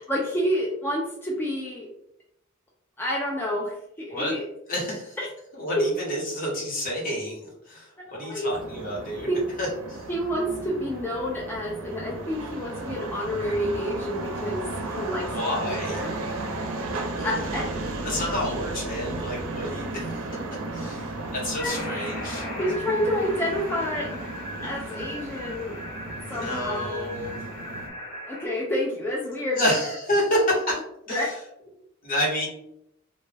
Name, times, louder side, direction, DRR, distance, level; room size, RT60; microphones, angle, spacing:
voice 1, 0.1-1.9 3.0-4.5 5.2-5.3 5.8-5.9 8.1-8.5 9.3-9.4 10.1-15.3 15.6-16.1 17.2-17.8 21.6-21.8 22.6-24.1 24.6-25.8 26.3-27.0 28.3-29.7 31.1-31.3, equal, 10° left, -4 dB, 0.3 m, -29 dB
voice 2, 4.7-5.2 5.5-9.3 9.6-10.1 15.3-16.0 17.2-17.3 18.0-20.2 20.7-22.5 26.3-27.5 29.6-30.8 31.1-31.3 32.0-32.5, equal, 45° left, -4 dB, 1.0 m, -29 dB
sound 1, 8.5-27.9, right 2 dB, 85° right, 0.5 m, -34 dB
sound 2, 21.7-28.5, equal, 65° left, 1.1 m, -38 dB
2.2 x 2.1 x 3.2 m, 0.79 s
head